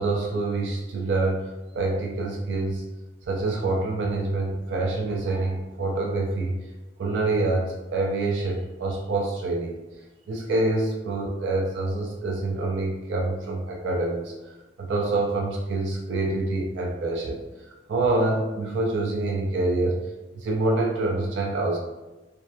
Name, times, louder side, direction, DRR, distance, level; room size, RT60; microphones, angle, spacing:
voice 1, 0.0-1.4 1.7-2.8 3.3-6.6 7.0-9.7 10.3-14.3 14.8-17.4 17.9-20.0 20.3-21.8, right 2 dB, 70° right, -1 dB, 0.3 m, -26 dB
2.6 x 2.2 x 2.2 m, 1.1 s
head